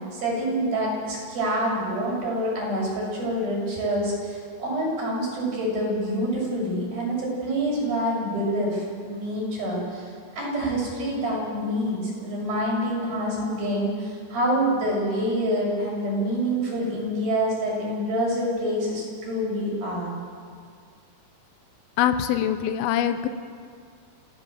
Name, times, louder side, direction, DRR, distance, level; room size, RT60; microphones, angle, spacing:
voice 1, 0.1-20.1, equal, 60° right, -3 dB, 8.9 m, -26 dB
voice 2, 22.0-23.3, left 10 dB, 75° left, 9 dB, 2.7 m, -23 dB
26.0 x 16.5 x 7.7 m, 2.1 s
omnidirectional pair, 4.8 m